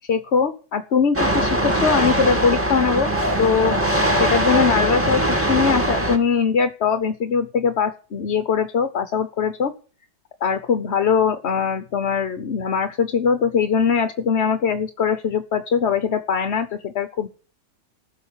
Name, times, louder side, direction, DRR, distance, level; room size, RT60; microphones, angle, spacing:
voice 1, 0.1-3.1 3.4-3.8 4.2-9.7 10.4-17.3, left 6 dB, 45° left, 10 dB, 1.0 m, -21 dB
sound 1, 1.1-6.2, right 1 dB, 5° right, 2.0 m, -21 dB
15.0 x 6.4 x 9.7 m, 0.38 s
omnidirectional pair, 1.9 m